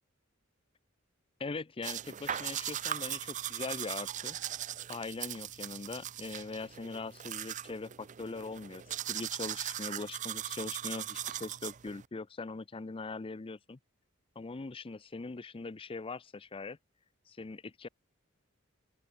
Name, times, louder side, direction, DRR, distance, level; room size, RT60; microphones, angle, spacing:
voice 1, 1.4-4.4 4.9-8.8 9.1-13.8 14.4-16.8 17.3-17.9, left 3 dB, 25° left, 0.5 m, -41 dB
sound 1, 1.8-12.1, right 11 dB, 35° right, 0.5 m, -39 dB
open air
head